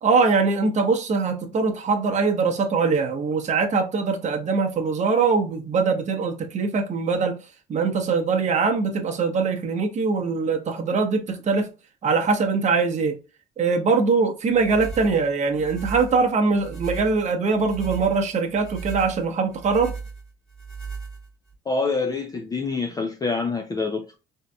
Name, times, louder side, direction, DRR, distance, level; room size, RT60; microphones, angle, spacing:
voice 1, 0.0-7.4 7.7-11.7 12.0-13.1 13.6-19.9, right 4 dB, 40° right, 0.8 m, -22 dB
sound 1, 14.5-21.5, right 5 dB, ahead, 1.0 m, -37 dB
voice 2, 21.7-24.1, left 4 dB, 20° left, 0.4 m, -26 dB
3.7 x 2.7 x 2.2 m
cardioid pair, 100°, 18 cm